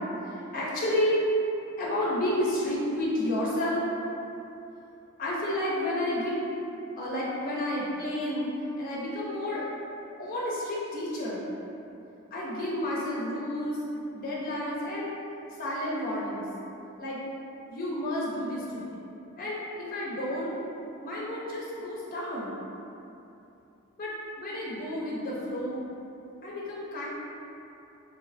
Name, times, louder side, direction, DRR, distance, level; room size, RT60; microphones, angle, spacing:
voice 1, 0.5-1.2 1.8-3.8 5.2-6.4 7.0-8.5 8.8-9.6 10.2-11.5 12.3-13.8 14.1-15.1 15.6-16.4 17.0-17.2 17.7-19.0 19.4-20.5 21.0-22.5 24.0-25.9 26.4-27.1, left 1 dB, 40° left, -6 dB, 0.4 m, -31 dB
3.1 x 2.6 x 2.5 m, 2.8 s
head